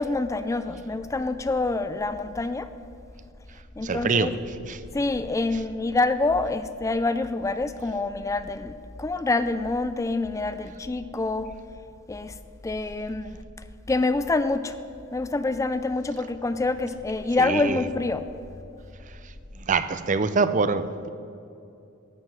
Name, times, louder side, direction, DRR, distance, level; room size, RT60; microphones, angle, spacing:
voice 1, 0.0-2.7 3.8-4.3 4.9-11.5 12.1-12.3 12.6-13.4 13.9-14.8 15.1-18.2, left 3 dB, 15° left, 12 dB, 0.3 m, -26 dB
voice 2, 3.8-4.3 4.6-4.8 17.4-17.8 19.6-21.1, right 4 dB, 40° right, 12 dB, 0.5 m, -24 dB
12.0 x 7.7 x 7.4 m, 2.7 s
head